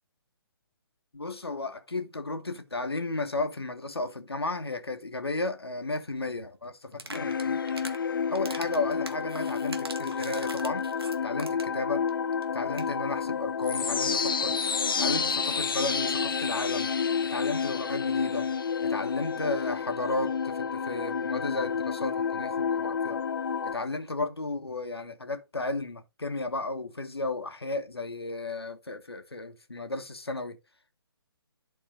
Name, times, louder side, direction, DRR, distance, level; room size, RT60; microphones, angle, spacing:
voice 1, 1.1-7.6 8.3-10.9 11.2-12.0 12.5-14.6 15.0-16.9 17.2-18.5 18.8-23.2 23.6-30.6, left 2 dB, 75° left, 1.6 m, -33 dB
sound 1, 6.9-8.0 8.3-11.8 12.1-12.2 12.4-12.5 12.7-12.9, right 3 dB, 65° right, 1.6 m, -42 dB
sound 2, 7.1-23.7, left 6 dB, 60° left, 0.6 m, -30 dB
11.5 x 4.3 x 3.8 m
figure-of-eight pair, 135°, 13 cm